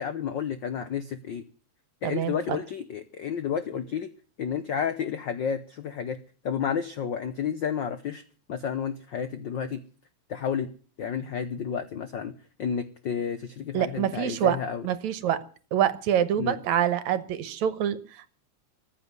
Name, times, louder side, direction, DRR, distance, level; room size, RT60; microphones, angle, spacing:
voice 1, 0.0-1.4 2.0-4.1 4.4-6.2 6.4-8.2 8.5-9.8 10.3-10.7 11.0-12.3 12.6-14.8 16.4-16.6, left 7 dB, 80° left, 11 dB, 1.0 m, -31 dB
voice 2, 2.0-2.6 13.7-14.6 14.8-15.4 15.7-18.3, right 10 dB, 75° right, 14 dB, 2.4 m, -26 dB
14.5 x 8.6 x 9.4 m, 0.40 s
omnidirectional pair, 3.4 m